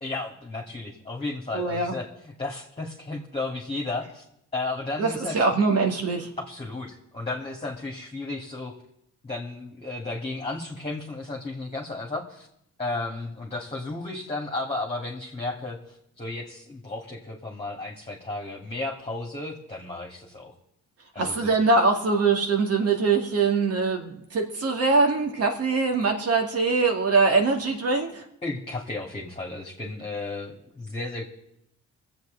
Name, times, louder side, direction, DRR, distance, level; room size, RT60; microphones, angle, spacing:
voice 1, 0.0-4.2 4.5-5.4 6.5-8.7 9.2-12.5 12.8-20.5 21.1-21.5 28.4-31.3, left 2 dB, 20° left, -2 dB, 2.3 m, -33 dB
voice 2, 1.5-1.9 5.0-6.3 21.2-28.2, right 4 dB, 55° right, 3 dB, 2.3 m, -23 dB
24.0 x 8.1 x 4.0 m, 0.79 s
cardioid pair, 90°, 30 cm